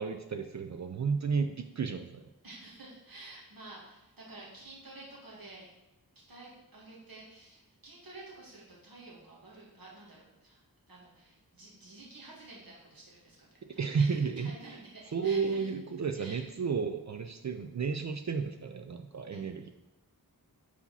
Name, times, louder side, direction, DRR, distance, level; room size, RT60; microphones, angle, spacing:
voice 1, 0.0-2.2 13.7-14.5 15.1-19.7, right 5 dB, 50° right, 6 dB, 0.4 m, -32 dB
voice 2, 2.4-5.7 6.3-10.6 10.9-15.7 16.2-16.4 19.3-19.4, right 2 dB, 70° right, -5 dB, 2.0 m, -50 dB
4.8 x 4.3 x 5.5 m, 0.96 s
wide cardioid pair, 70°, 37 cm